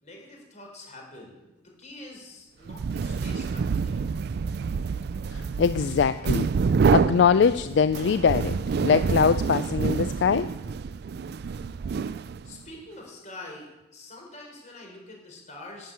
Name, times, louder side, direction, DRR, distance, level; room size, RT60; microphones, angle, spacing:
voice 1, 0.0-4.1 12.4-15.9, left 2 dB, 40° left, 0 dB, 4.2 m, -45 dB
sound 1, 2.7-12.6, right 5 dB, 60° right, 0.3 m, -27 dB
voice 2, 5.3-6.5 6.9-10.5, left 6 dB, 70° left, 13 dB, 0.3 m, -22 dB
11.0 x 7.6 x 8.8 m, 1.0 s
head